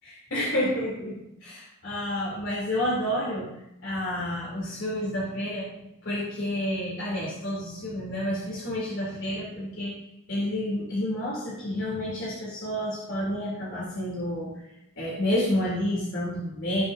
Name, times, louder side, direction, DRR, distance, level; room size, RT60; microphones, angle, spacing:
voice 1, 0.3-3.5 3.8-5.7 6.0-9.9 10.3-14.5 15.0-16.8, left 1 dB, 65° left, -8 dB, 3.9 m, -29 dB
18.5 x 7.2 x 2.9 m, 0.85 s
head